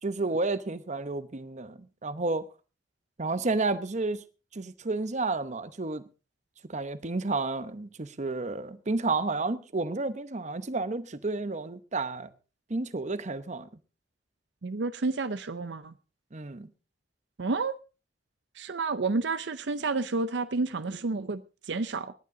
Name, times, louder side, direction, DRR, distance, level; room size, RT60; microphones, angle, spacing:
voice 1, 0.0-2.5 3.2-4.2 4.5-6.0 6.7-12.3 12.7-13.7 16.3-16.7, right 3 dB, 40° right, 0.8 m, -31 dB
voice 2, 14.6-15.9 17.4-17.7 18.5-22.1, right 3 dB, 70° right, 0.6 m, -30 dB
19.0 x 10.5 x 3.8 m
head